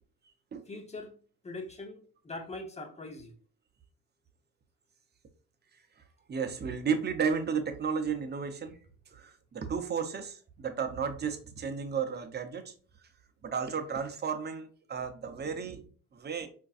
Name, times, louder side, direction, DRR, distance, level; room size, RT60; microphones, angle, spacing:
voice 1, 0.7-1.1 1.4-2.0 2.2-3.3, left 2 dB, 20° left, 0.8 m, -41 dB
voice 2, 6.3-8.7 9.1-12.7 13.4-16.5, right 6 dB, 35° right, 0.7 m, -33 dB
4.4 x 2.6 x 2.4 m
cardioid pair, 90°, 30 cm